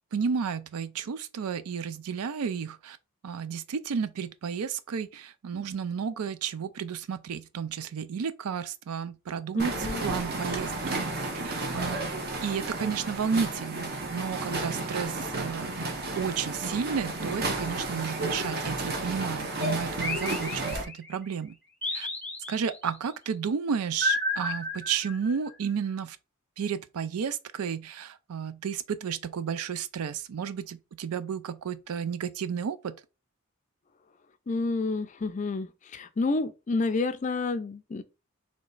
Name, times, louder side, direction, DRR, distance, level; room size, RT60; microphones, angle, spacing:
voice 1, 0.1-3.0 3.2-12.1 12.4-21.6 21.9-22.1 22.5-26.2 26.6-32.9, right 6 dB, 85° right, 0.4 m, -32 dB
voice 2, 9.6-10.0 34.5-38.0, left 3 dB, 35° left, 0.3 m, -29 dB
sound 1, 9.6-20.8, right 2 dB, 45° right, 0.8 m, -32 dB
sound 2, 20.0-21.1 21.8-22.9 24.0-25.5, left 2 dB, 5° left, 0.8 m, -32 dB
3.2 x 3.1 x 3.8 m
head